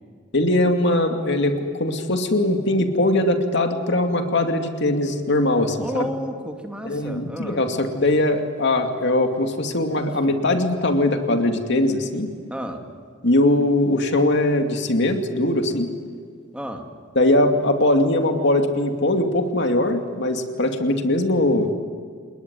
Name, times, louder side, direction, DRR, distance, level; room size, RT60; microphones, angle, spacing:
voice 1, 0.3-6.1 6.8-12.3 13.2-15.9 17.2-21.7, left 1 dB, 60° left, 5 dB, 2.5 m, -21 dB
voice 2, 5.8-7.6 10.2-10.3 12.5-12.8 16.5-16.8, equal, 5° right, 3 dB, 2.5 m, -31 dB
29.0 x 20.5 x 9.7 m, 2.1 s
head